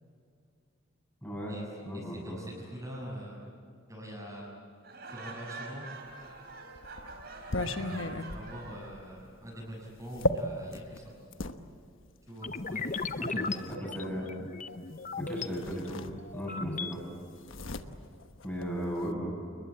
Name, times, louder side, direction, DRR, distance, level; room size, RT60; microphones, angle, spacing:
voice 1, 1.2-1.6 1.8-2.4 13.2-14.4 15.2-16.0 16.3-17.0 18.4-19.3, equal, 10° left, -3 dB, 7.4 m, -36 dB
voice 2, 1.9-3.4 3.9-4.5 5.1-5.9 7.6-11.0 12.3-13.5, equal, 15° right, -4 dB, 6.6 m, -44 dB
Laughter, 4.8-8.9, right 3 dB, 50° right, 4.4 m, -45 dB
sound 1, 6.2-11.6 12.5-13.8 15.1-15.2 15.5-16.6 16.9-19.1, left 1 dB, 70° left, 1.2 m, -36 dB
sound 2, 12.4-15.5 16.0-16.9, left 4 dB, 35° left, 0.8 m, -37 dB
29.5 x 21.5 x 8.6 m, 2.4 s
head